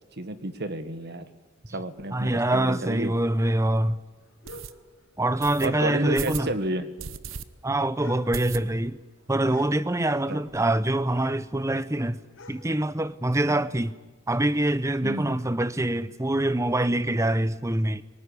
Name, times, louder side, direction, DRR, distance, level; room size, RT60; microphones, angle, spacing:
voice 1, 0.2-1.2 1.7-3.1 5.6-6.9 10.0-10.4 13.5-13.6 15.0-15.3, right 1 dB, 55° right, 1.7 m, -31 dB
voice 2, 2.1-4.0 5.2-6.5 7.6-9.0 9.3-12.2 12.5-13.9 14.3-18.0, right 1 dB, 15° right, 0.8 m, -25 dB
sound 1, 2.6-6.4 6.7-10.4 10.8-14.0, left 1 dB, 75° left, 4.2 m, -49 dB
sound 2, 3.0-3.1 3.6-3.7 4.4-4.7 5.4-5.7 6.1-6.5 7.0-7.4 7.8-7.9 8.3-9.0 9.3-9.4 9.7-9.8 10.0-10.6, right 7 dB, 75° right, 1.0 m, -37 dB
24.5 x 19.0 x 9.9 m
head